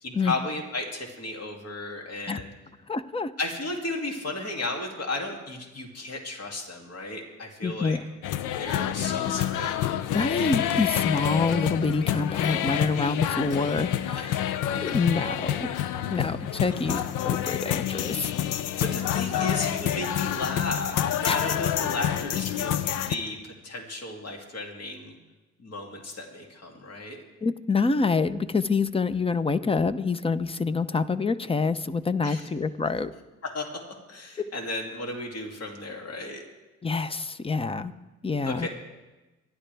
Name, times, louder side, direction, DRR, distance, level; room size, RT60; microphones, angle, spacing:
voice 1, 0.0-2.5 3.4-8.0 8.5-9.7 14.9-15.0 16.7-17.0 18.8-21.0 21.2-25.2 25.6-27.2 32.2-32.5 33.4-33.8 34.1-36.4 38.5-38.7, left 2 dB, 55° left, 1 dB, 2.6 m, -34 dB
voice 2, 2.9-3.3 7.6-8.0 10.1-14.4 14.7-15.7 16.1-18.3 21.3-21.4 23.0-23.1 27.4-33.1 36.8-37.9 38.2-38.7, left 4 dB, 20° left, 13 dB, 0.6 m, -26 dB
sound 1, 8.2-23.2, left 11 dB, 85° left, 0.6 m, -28 dB
25.0 x 11.5 x 3.4 m, 1.1 s
cardioid pair, 90°, 30 cm